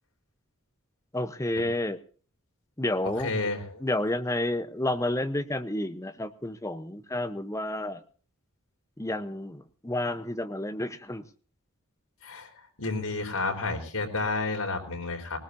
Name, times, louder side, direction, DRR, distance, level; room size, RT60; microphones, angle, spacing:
voice 1, 1.1-2.0 2.8-3.3 3.8-8.0 9.0-11.2, left 1 dB, 15° left, 10 dB, 0.9 m, -30 dB
voice 2, 3.2-3.9 12.2-12.5 12.8-15.4, left 3 dB, 80° left, 2 dB, 4.3 m, -31 dB
20.0 x 20.0 x 2.7 m, 0.43 s
head